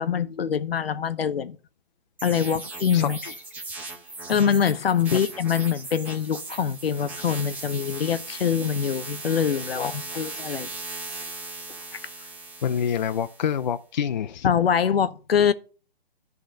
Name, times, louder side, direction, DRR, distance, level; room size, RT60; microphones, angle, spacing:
voice 1, 0.0-1.6 2.2-3.2 4.3-10.7 14.4-15.5, left 7 dB, 75° left, 0.8 m, -24 dB
sound 1, 2.2-13.6, right 3 dB, 5° right, 0.9 m, -38 dB
voice 2, 2.9-3.3 5.1-5.2 9.8-10.3 12.2-12.3 12.6-14.5, left 8 dB, 50° left, 0.5 m, -28 dB
11.5 x 3.9 x 6.4 m
hypercardioid pair, 155°, 31 cm